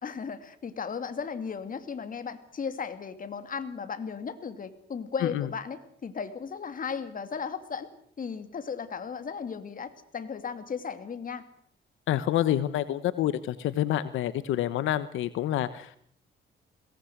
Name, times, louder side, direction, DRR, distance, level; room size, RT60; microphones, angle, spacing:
voice 1, 0.0-7.9 8.2-11.4, left 6 dB, 45° left, 10 dB, 2.6 m, -36 dB
voice 2, 12.1-16.0, left 12 dB, 85° left, 14 dB, 1.1 m, -28 dB
22.0 x 18.0 x 8.0 m, 0.62 s
cardioid pair, 90°, 20 cm